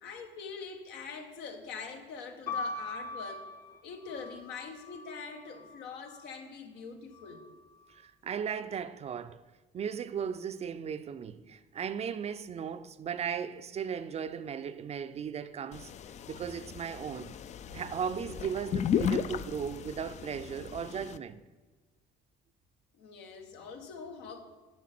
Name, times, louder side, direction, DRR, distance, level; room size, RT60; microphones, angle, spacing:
voice 1, 0.0-3.5 3.8-7.5 22.9-24.4, left 5 dB, 90° left, 1.3 m, -44 dB
sound 1, 2.5-6.3 7.1-7.8, left 3 dB, 60° left, 1.2 m, -41 dB
voice 2, 7.9-9.4 9.7-15.9 16.3-17.3 17.7-21.4, right 7 dB, 40° right, 0.4 m, -36 dB
sound 2, 15.7-21.2, left 8 dB, 45° left, 0.4 m, -35 dB
8.4 x 5.6 x 5.9 m
cardioid pair, 110°, 17 cm